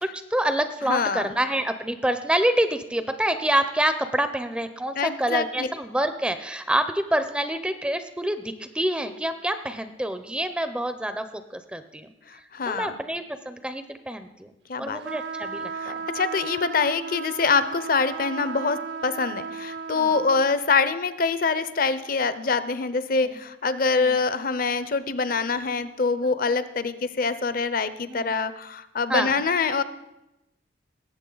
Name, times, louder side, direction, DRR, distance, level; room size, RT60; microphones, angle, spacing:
voice 1, 0.0-12.1 12.7-14.5 14.8-16.0 19.9-20.1 23.1-23.3 24.0-24.2 26.2-26.5 28.1-28.3 29.1-29.4, right 1 dB, 5° right, 10 dB, 0.4 m, -27 dB
voice 2, 0.8-1.3 5.0-5.7 12.3-12.9 14.7-15.0 15.8-29.8, left 4 dB, 45° left, 13 dB, 0.6 m, -25 dB
sound 1, 15.0-20.5, right 5 dB, 60° right, 0.5 m, -35 dB
19.0 x 8.0 x 3.9 m, 0.90 s
head